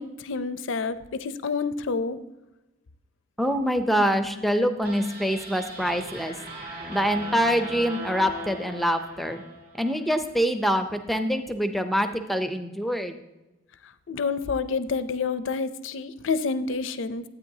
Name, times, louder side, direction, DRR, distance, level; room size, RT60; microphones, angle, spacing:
voice 1, 0.0-2.2 14.1-17.2, left 4 dB, 65° left, 13 dB, 0.5 m, -28 dB
voice 2, 3.4-6.4 6.9-9.4 9.8-13.2, equal, ahead, 8 dB, 0.5 m, -25 dB
sound 1, 4.8-10.1, right 1 dB, 45° right, 2.2 m, -39 dB
12.5 x 8.6 x 2.7 m, 1.0 s
head